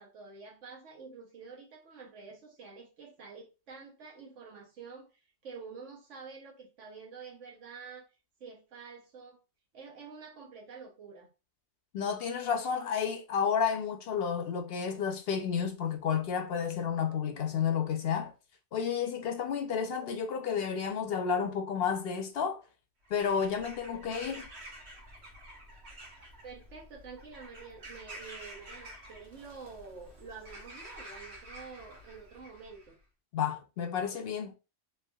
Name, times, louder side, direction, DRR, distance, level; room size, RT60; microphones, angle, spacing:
voice 1, 0.0-5.1 5.4-8.1 8.4-9.4 9.7-11.3 26.4-33.0, right 5 dB, 90° right, 1.3 m, -48 dB
voice 2, 11.9-18.3 18.7-22.6 23.1-24.5 33.3-34.5, left 7 dB, 65° left, 0.7 m, -31 dB
Bird vocalization bird call bird song / Crow, 23.0-32.9, right 1 dB, 65° right, 1.2 m, -49 dB
3.4 x 2.7 x 2.2 m
omnidirectional pair, 1.2 m